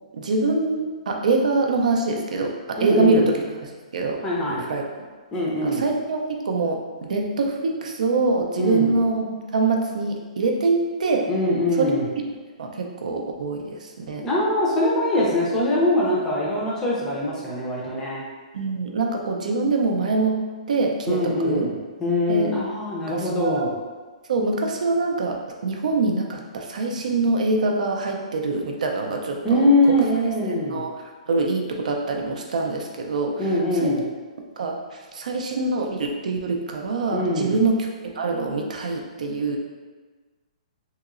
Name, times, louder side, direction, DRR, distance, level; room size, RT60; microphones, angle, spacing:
voice 1, 0.1-4.2 4.4-4.8 5.6-11.2 11.8-11.9 12.6-14.2 18.5-20.4 20.7-21.7 22.3-22.5 23.1-23.7 24.3-29.7 30.4-30.9 31.3-33.9 34.6-37.8 38.2-39.6, right 3 dB, 75° right, 1 dB, 0.5 m, -24 dB
voice 2, 2.8-3.3 4.2-4.6 5.3-5.8 8.6-8.9 11.3-12.1 14.2-18.2 21.1-21.7 22.0-23.7 29.4-30.8 33.4-34.0 37.1-37.6, left 1 dB, 10° left, -6 dB, 0.5 m, -22 dB
2.9 x 2.8 x 2.4 m, 1.4 s
hypercardioid pair, 155°, 4 cm